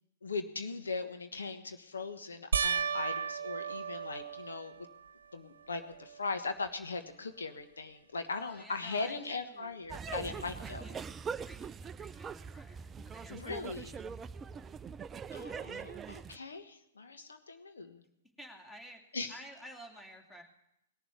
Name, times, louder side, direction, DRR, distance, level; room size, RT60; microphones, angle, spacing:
voice 1, 0.2-4.9 5.3-10.9 13.3-14.0 15.3-18.0 19.1-19.3, left 4 dB, 80° left, 8 dB, 1.3 m, -39 dB
sound 1, 2.5-5.1 5.7-6.3 6.6-6.7 10.0-10.1, right 7 dB, 70° right, 0.6 m, -35 dB
voice 2, 8.3-9.8 10.2-13.6 18.4-19.0 19.3-20.4, equal, 5° left, 2 dB, 2.5 m, -52 dB
sound 2, 9.9-16.4, right 6 dB, 20° right, 0.4 m, -42 dB
19.5 x 7.2 x 8.3 m, 0.83 s
figure-of-eight pair, 115°, 0 cm